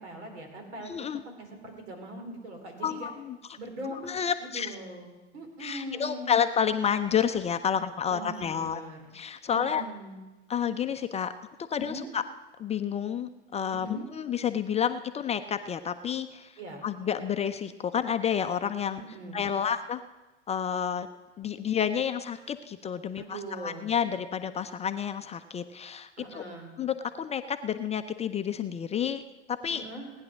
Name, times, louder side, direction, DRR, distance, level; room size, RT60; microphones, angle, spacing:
voice 1, 0.0-1.1 1.4-3.1 3.6-4.1 4.4-6.3 8.1-9.0 9.5-10.2 11.8-12.1 13.7-14.1 16.6-16.8 19.0-19.4 23.2-23.9 26.2-26.7 29.7-30.1, right 1 dB, 75° right, 3 dB, 4.1 m, -41 dB
voice 2, 0.9-1.2 2.8-3.4 4.0-4.7 5.6-8.8 9.1-9.8 10.5-11.3 11.7-12.2 12.6-16.5 16.8-19.0 19.3-20.0 20.5-21.1 21.4-26.4 26.8-29.2 29.5-29.8, left 8 dB, 20° left, 9 dB, 0.5 m, -30 dB
18.5 x 9.7 x 6.2 m, 1.1 s
figure-of-eight pair, 85°, 35 cm